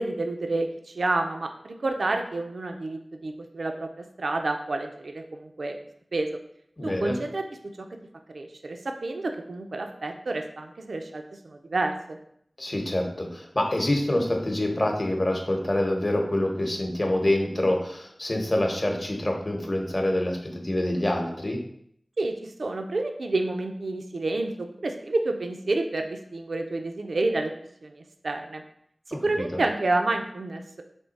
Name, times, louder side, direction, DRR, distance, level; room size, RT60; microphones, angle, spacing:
voice 1, 0.0-5.7 6.1-6.3 6.8-7.9 8.3-12.2 22.2-27.5 27.8-28.6 29.1-30.8, right 2 dB, 75° right, 5 dB, 0.4 m, -29 dB
voice 2, 6.8-7.2 12.6-21.6, left 1 dB, 35° left, 2 dB, 0.8 m, -26 dB
3.5 x 3.1 x 4.0 m, 0.69 s
wide cardioid pair, 65°, 0 cm